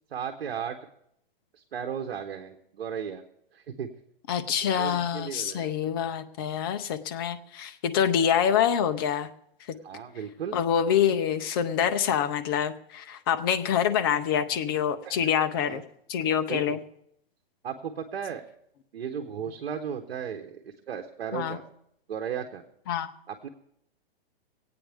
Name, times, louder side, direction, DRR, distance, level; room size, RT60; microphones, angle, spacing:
voice 1, 0.1-0.8 1.5-3.2 3.5-3.9 4.7-5.7 9.8-10.5 15.0-15.3 15.6-15.8 16.5-16.8 17.6-18.4 18.9-21.6 22.1-22.6 23.3-23.5, right 7 dB, 70° right, 5 dB, 1.2 m, -35 dB
voice 2, 4.3-9.3 10.5-15.8 16.1-16.8 21.3-21.6 22.9-23.1, left 8 dB, 25° left, 9 dB, 0.5 m, -26 dB
24.5 x 8.7 x 3.5 m, 0.76 s
hypercardioid pair, 160°, 30 cm